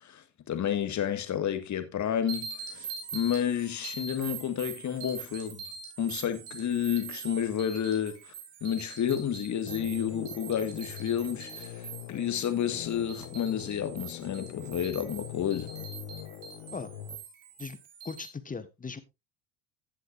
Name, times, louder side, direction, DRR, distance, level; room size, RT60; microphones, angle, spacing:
voice 1, 0.0-5.6 6.0-8.3 8.6-15.7, left 9 dB, 40° left, 1.8 m, -31 dB
sound 1, 2.3-18.3, right 6 dB, 65° right, 3.9 m, -43 dB
sound 2, 9.7-17.2, left 12 dB, 80° left, 1.6 m, -43 dB
voice 2, 18.0-19.0, left 5 dB, 20° left, 1.4 m, -38 dB
15.5 x 7.9 x 2.5 m
supercardioid pair, 95°, 45 cm